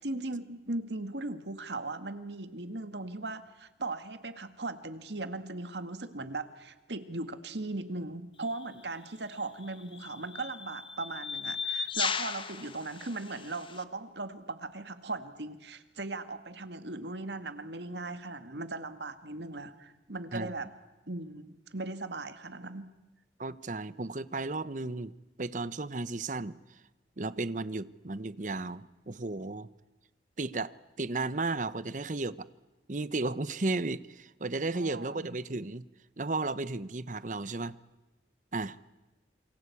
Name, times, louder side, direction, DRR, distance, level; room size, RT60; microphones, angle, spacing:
voice 1, 0.0-20.7 21.1-22.9 34.7-35.4, right 2 dB, 80° right, 10 dB, 1.9 m, -38 dB
sound 1, 8.4-8.6 9.6-13.8, left 6 dB, 30° left, 1.2 m, -36 dB
voice 2, 23.4-26.6 27.2-29.7 30.4-32.5 32.9-35.9 36.2-37.7 38.5-38.8, right 3 dB, 45° right, 16 dB, 0.9 m, -34 dB
28.0 x 24.5 x 8.5 m, 1.1 s
head